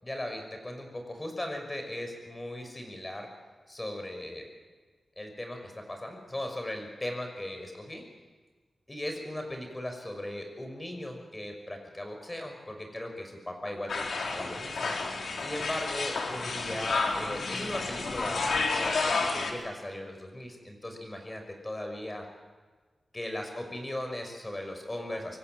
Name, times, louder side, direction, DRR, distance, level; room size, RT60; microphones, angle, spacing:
voice 1, 0.0-3.3 3.7-4.4 5.2-8.0 8.9-15.0 15.4-22.3 23.1-25.4, left 1 dB, 20° left, 4 dB, 5.8 m, -38 dB
sound 1, 13.9-19.5, left 3 dB, 80° left, 3.7 m, -31 dB
26.0 x 23.5 x 7.9 m, 1.4 s
wide cardioid pair, 105°, 0 cm